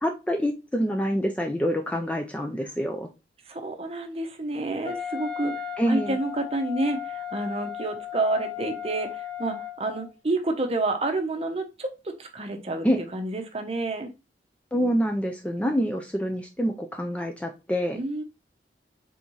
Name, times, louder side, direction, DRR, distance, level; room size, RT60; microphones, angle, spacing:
voice 1, 0.0-3.1 5.8-6.2 12.8-13.0 14.7-18.0, equal, 5° left, 4 dB, 0.3 m, -26 dB
voice 2, 3.5-5.6 5.9-12.9 13.1-14.1 17.9-18.2, right 2 dB, 35° right, 5 dB, 0.7 m, -29 dB
Wind instrument woodwind instrument, 4.9-10.1, left 10 dB, 35° left, 0.9 m, -35 dB
4.0 x 3.5 x 3.0 m, 0.27 s
head